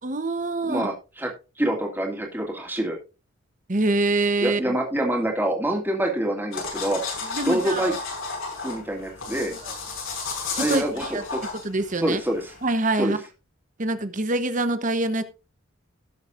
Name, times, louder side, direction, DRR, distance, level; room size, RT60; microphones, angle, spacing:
voice 1, 0.0-0.9 3.7-4.7 7.3-8.0 9.6-9.7 10.5-11.2 11.6-12.2 12.6-13.2 13.8-15.2, right 2 dB, 40° right, 11 dB, 1.0 m, -25 dB
voice 2, 0.6-1.3 1.6-3.0 4.4-7.0 7.4-7.9 8.6-9.5 10.6-11.4 12.0-12.5 13.0-13.1, right 1 dB, 10° right, 1 dB, 2.5 m, -26 dB
sound 1, 6.5-12.7, left 4 dB, 75° left, 5.9 m, -33 dB
18.0 x 7.1 x 2.6 m, 0.30 s
head